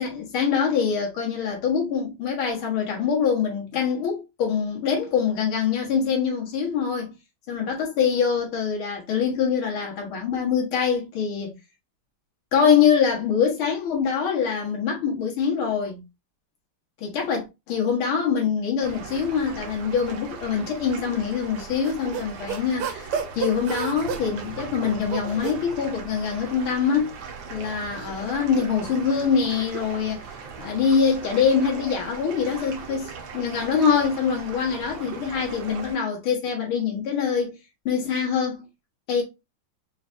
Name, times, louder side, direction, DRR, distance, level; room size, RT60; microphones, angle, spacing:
voice 1, 0.0-7.1 7.5-11.5 12.5-16.0 17.0-27.2 27.5-37.6 37.9-38.7 39.1-39.2, left 6 dB, 70° left, 2.1 m, -24 dB
sound 1, 18.8-36.0, right 5 dB, 65° right, 1.6 m, -39 dB
sound 2, 21.6-25.6 26.5-28.3, right 7 dB, 90° right, 1.7 m, -33 dB
4.8 x 3.3 x 2.5 m
omnidirectional pair, 2.4 m